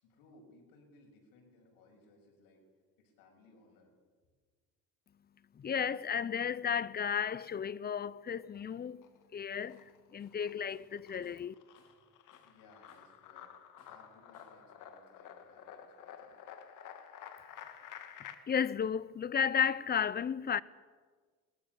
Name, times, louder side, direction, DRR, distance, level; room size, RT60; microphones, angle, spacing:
voice 1, 0.0-2.6 3.0-3.9 12.4-13.5 13.9-16.4, left 2 dB, 80° left, 7.3 m, -62 dB
voice 2, 5.6-9.0 9.3-11.5 18.5-20.6, left 7 dB, 30° left, 0.7 m, -33 dB
sound 1, 8.4-9.2 9.6-18.3, left 9 dB, 65° left, 2.2 m, -51 dB
Tools, 9.7-9.9 10.2-12.1 12.3-13.2 13.8-14.6, left 3 dB, 45° left, 6.0 m, -68 dB
21.0 x 20.5 x 7.0 m
cardioid pair, 105°, 34 cm